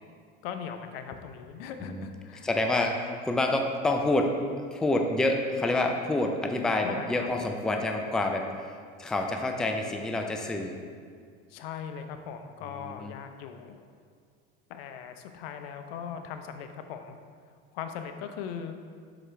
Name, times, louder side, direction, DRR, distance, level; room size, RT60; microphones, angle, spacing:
voice 1, 0.4-2.5 6.8-7.3 11.5-13.8 14.7-17.2 17.7-18.7, left 7 dB, 85° left, 7 dB, 0.6 m, -39 dB
voice 2, 2.4-4.3 4.7-8.7 9.0-10.7 12.8-13.1, left 2 dB, ahead, 3 dB, 0.3 m, -28 dB
5.9 x 4.9 x 3.3 m, 2.1 s
supercardioid pair, 110°, 29 cm